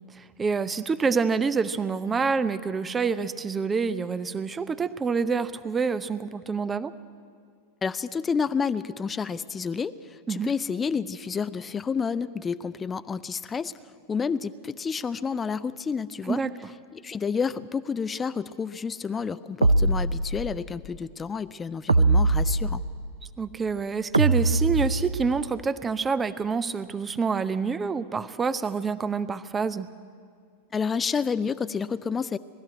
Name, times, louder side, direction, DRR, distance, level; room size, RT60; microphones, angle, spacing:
voice 1, 0.1-6.9 10.3-10.5 16.3-16.5 23.4-29.9, right 5 dB, 15° right, 14 dB, 0.7 m, -27 dB
voice 2, 7.8-13.7 14.1-16.4 16.9-22.8 30.7-32.4, left 5 dB, 20° left, 14 dB, 0.5 m, -30 dB
sound 1, 19.6-20.7 21.9-23.1 24.1-25.4, right 2 dB, 80° right, 0.5 m, -22 dB
20.5 x 13.0 x 9.7 m, 2.2 s
figure-of-eight pair, 90°, 0 cm